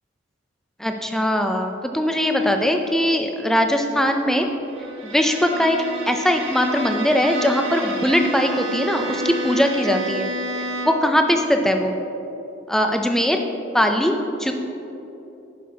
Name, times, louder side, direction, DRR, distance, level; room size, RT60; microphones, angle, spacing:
voice 1, 0.8-4.5 5.0-10.3 10.6-12.0 12.7-13.4 13.7-14.5, equal, ahead, 4 dB, 0.5 m, -20 dB
Bowed string instrument, 4.7-11.2, right 1 dB, 70° right, 1.3 m, -30 dB
10.0 x 6.1 x 4.7 m, 3.0 s
head